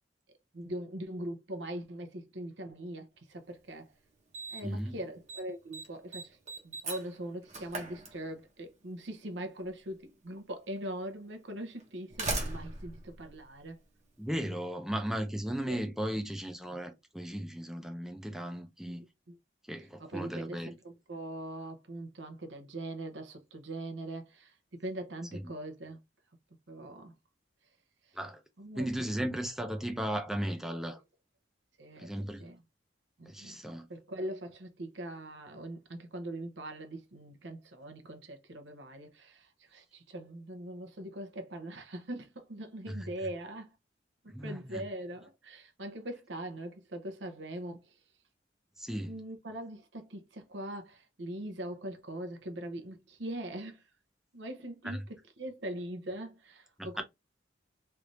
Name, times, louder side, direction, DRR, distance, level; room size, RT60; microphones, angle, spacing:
voice 1, 0.5-3.9 4.5-6.4 6.6-13.8 15.7-15.8 18.8-18.9 19.3-19.4 20.0-26.0 26.7-27.1 28.6-28.9 29.2-29.3 31.8-32.1 32.4-32.6 33.2-33.6 33.9-43.7 44.2-47.9 49.0-53.8 54.3-57.0, right 1 dB, 75° right, 0.8 m, -41 dB
Slam, 3.5-3.6 4.3-4.8 5.1-5.4 5.7-8.7 9.8-9.9 10.8-10.9 11.8-14.1, right 2 dB, 40° right, 1.0 m, -39 dB
voice 2, 4.6-5.0 14.2-19.0 19.7-20.7 25.3-25.5 28.1-28.4 28.8-31.0 32.0-32.4 33.3-33.9 42.9-43.0 44.3-44.8 48.8-49.1 54.8-55.0 56.8-57.0, equal, ahead, 0.6 m, -36 dB
3.3 x 2.6 x 3.1 m
head